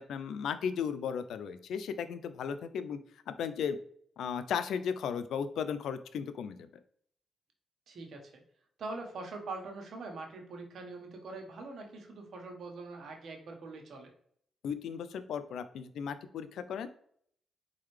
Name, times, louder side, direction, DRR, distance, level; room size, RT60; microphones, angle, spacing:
voice 1, 0.0-3.0 3.3-3.8 4.2-6.7 14.6-16.9, left 7 dB, 80° left, 12 dB, 0.4 m, -35 dB
voice 2, 7.9-8.4 8.8-14.1, right 3 dB, 70° right, 2 dB, 1.2 m, -43 dB
4.3 x 3.8 x 3.2 m, 0.64 s
cardioid pair, 70°, 0 cm